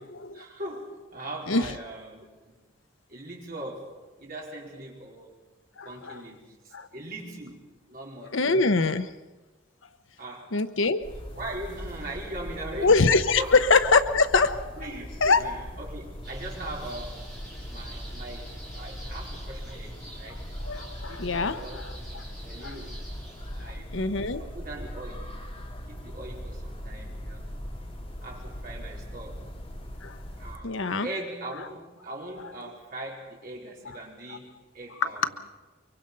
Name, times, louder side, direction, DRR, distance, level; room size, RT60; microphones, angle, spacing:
voice 1, 0.3-2.5 3.1-5.3 5.8-8.4 10.2-10.5 11.3-13.0 13.4-13.6 14.8-17.3 17.7-18.5 18.7-20.4 21.1-21.8 22.4-23.0 23.5-23.9 24.4-25.4 25.9-27.5 28.2-29.4 30.4-35.3, right 1 dB, 45° right, -2 dB, 4.5 m, -40 dB
voice 2, 5.8-6.2 6.7-6.9 8.3-9.1 10.5-11.0 12.8-13.4 13.7-14.8 15.2-15.4 20.3-20.4 20.6-21.9 22.6-22.7 23.6-24.4 30.0-30.2 30.6-31.1 34.3-34.4 35.0-35.1, left 4 dB, 75° left, 10 dB, 1.0 m, -24 dB
sound 1, 11.0-30.6, equal, 30° left, 2.9 m, -40 dB
sound 2, 16.2-23.8, right 1 dB, ahead, 6.0 m, -47 dB
24.0 x 23.5 x 5.5 m, 1.2 s
head